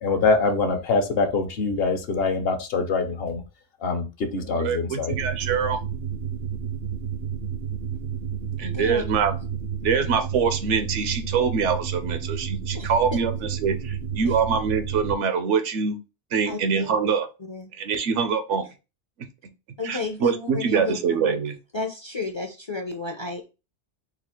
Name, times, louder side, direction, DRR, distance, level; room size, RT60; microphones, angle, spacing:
voice 1, 0.0-3.4 3.8-4.1 4.3-5.1, left 4 dB, 60° left, 6 dB, 0.9 m, -24 dB
voice 2, 4.4-5.8 8.6-9.3 9.8-13.3 13.6-16.0 16.3-17.3 17.8-18.6 19.9-21.5, right 6 dB, 80° right, 9 dB, 1.0 m, -24 dB
sound 1, 5.1-15.1, right 7 dB, 60° right, 0.7 m, -31 dB
voice 3, 8.7-9.3 12.7-13.2 14.2-14.4 16.5-17.1 17.4-17.7 19.8-21.4 21.7-23.5, left 3 dB, 35° left, 3 dB, 0.5 m, -33 dB
4.0 x 2.4 x 4.3 m, 0.29 s
omnidirectional pair, 1.2 m